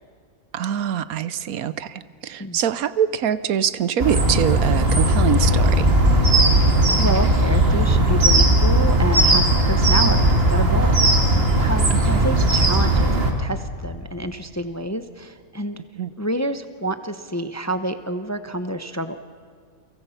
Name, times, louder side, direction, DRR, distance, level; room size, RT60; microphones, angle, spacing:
voice 1, 0.5-5.9 11.9-12.3 16.0-16.1, right 9 dB, 75° right, 15 dB, 1.2 m, -24 dB
sound 1, 4.0-13.3, right 1 dB, 40° right, 2.6 m, -17 dB
voice 2, 6.5-10.9 11.2-15.8 16.2-19.2, right 1 dB, 15° left, 9 dB, 0.7 m, -28 dB
29.5 x 24.0 x 5.8 m, 2.2 s
omnidirectional pair, 1.5 m